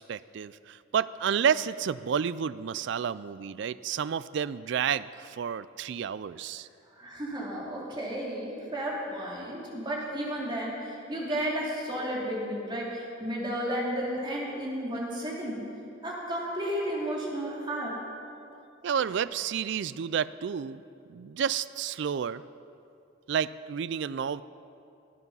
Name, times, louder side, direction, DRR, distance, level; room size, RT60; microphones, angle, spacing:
voice 1, 0.0-6.7 18.8-20.8 21.1-22.4 23.3-24.4, right 7 dB, 60° right, 16 dB, 0.3 m, -30 dB
voice 2, 6.9-15.7 16.0-18.0, equal, 25° right, -4 dB, 2.9 m, -33 dB
17.5 x 9.6 x 5.5 m, 2.6 s
head